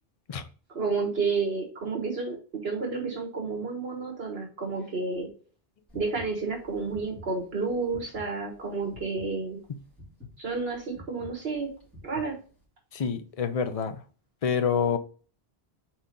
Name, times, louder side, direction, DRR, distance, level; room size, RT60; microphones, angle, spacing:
voice 1, 0.7-5.3 5.9-9.6 10.4-11.7 12.0-12.3, right 4 dB, 70° right, 1.5 m, -30 dB
sound 1, 5.9-12.6, left 1 dB, ahead, 2.8 m, -48 dB
voice 2, 12.9-14.0 14.4-15.0, left 6 dB, 40° left, 0.6 m, -27 dB
4.5 x 4.3 x 5.1 m
omnidirectional pair, 1.1 m